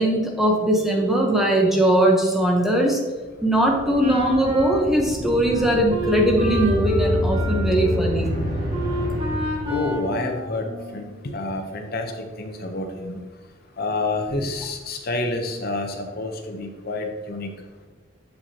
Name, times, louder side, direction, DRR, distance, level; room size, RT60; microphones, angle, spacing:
voice 1, 0.0-3.0 3.4-8.3, right 1 dB, ahead, -1 dB, 0.8 m, -20 dB
sound 1, 3.4-10.3, equal, 45° right, 1.6 m, -28 dB
Wind instrument woodwind instrument, 4.0-11.2, left 1 dB, 30° right, 1.0 m, -30 dB
voice 2, 9.7-13.2 13.8-17.5, left 2 dB, 50° left, 5 dB, 0.6 m, -28 dB
7.1 x 5.5 x 2.8 m, 1.3 s
head